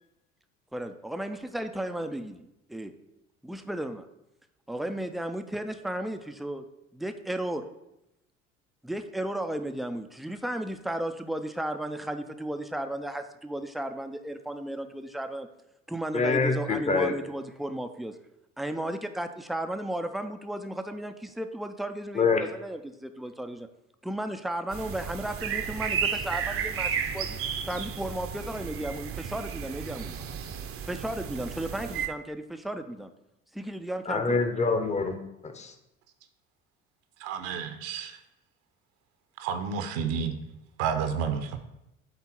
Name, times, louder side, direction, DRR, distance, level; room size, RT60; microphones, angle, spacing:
voice 1, 0.7-2.9 3.4-4.1 4.7-6.7 6.9-7.7 8.8-15.5 15.9-18.2 18.6-23.7 24.0-27.4 27.7-30.2 30.8-33.1 33.5-34.4, right 1 dB, ahead, 8 dB, 0.4 m, -34 dB
voice 2, 16.1-17.2 22.1-22.5 34.1-35.2 35.4-35.7, left 4 dB, 20° left, 7 dB, 0.8 m, -25 dB
sound 1, 24.7-32.1, right 7 dB, 35° right, 0.7 m, -33 dB
voice 3, 37.2-38.2 39.4-40.3 40.8-41.6, right 7 dB, 60° right, 8 dB, 0.9 m, -30 dB
8.2 x 3.7 x 4.3 m, 0.88 s
figure-of-eight pair, 60°, 38 cm